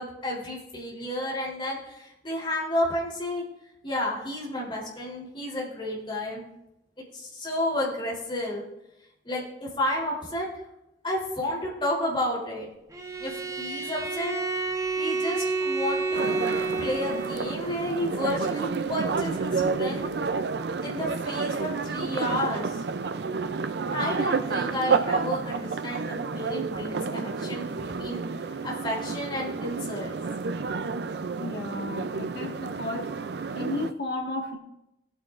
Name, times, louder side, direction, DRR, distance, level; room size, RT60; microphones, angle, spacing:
voice 1, 0.0-3.4 3.8-6.4 7.1-8.6 9.2-10.5 11.0-12.7 13.2-14.4 15.0-16.4 16.8-20.1 20.8-22.8 23.9-28.2 28.6-30.1, left 1 dB, 30° left, -4 dB, 3.4 m, -31 dB
Bowed string instrument, 12.9-17.7, right 3 dB, 20° right, 0.7 m, -30 dB
sound 1, 16.1-33.9, right 4 dB, 65° right, 0.5 m, -30 dB
voice 2, 31.4-33.1 33.6-34.6, left 2 dB, 65° left, 0 dB, 1.7 m, -33 dB
19.0 x 8.8 x 2.5 m, 0.90 s
head